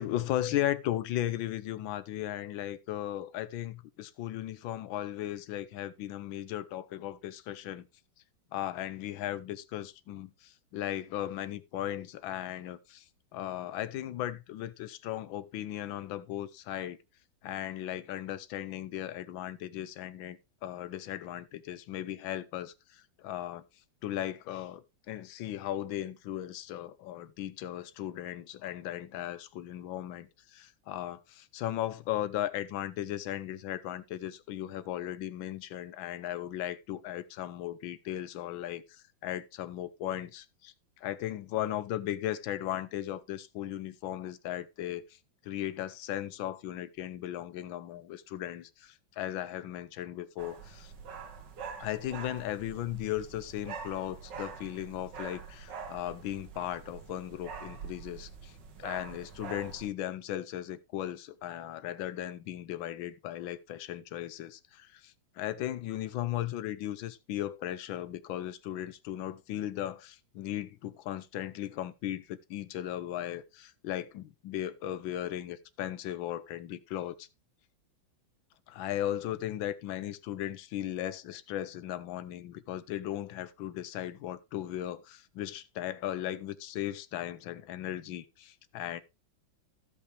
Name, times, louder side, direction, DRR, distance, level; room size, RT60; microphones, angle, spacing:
voice 1, 0.0-7.8 8.5-13.0 13.3-17.0 17.4-23.6 24.0-45.2 45.4-50.9 51.8-58.5 58.8-77.3 78.7-89.0, left 12 dB, 85° left, 1.5 m, -37 dB
sound 1, 50.4-59.9, right 6 dB, 65° right, 1.9 m, -45 dB
15.5 x 5.5 x 3.2 m
omnidirectional pair, 2.1 m